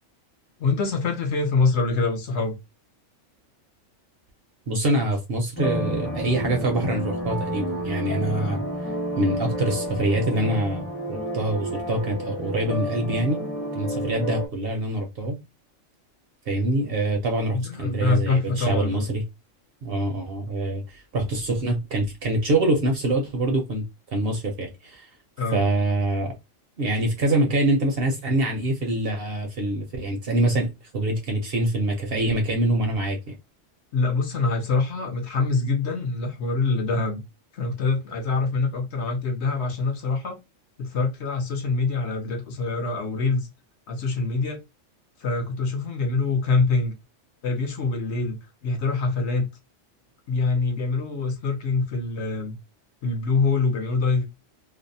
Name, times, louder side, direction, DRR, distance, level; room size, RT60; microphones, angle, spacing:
voice 1, 0.6-2.6 8.3-8.6 17.5-19.1 25.4-25.6 33.9-37.2 37.5-40.4 40.8-43.5 43.9-44.6 45.2-46.9 47.4-49.5 50.3-52.6 53.0-54.2, left 3 dB, 65° left, 0.9 m, -25 dB
voice 2, 4.7-8.6 9.2-13.4 13.7-15.4 16.5-19.2 19.8-23.8 24.1-25.1 25.5-26.3 26.8-33.3, right 1 dB, 55° right, 0.7 m, -25 dB
sound 1, 5.6-14.5, equal, 15° left, 0.6 m, -30 dB
2.6 x 2.0 x 2.6 m
omnidirectional pair, 1.3 m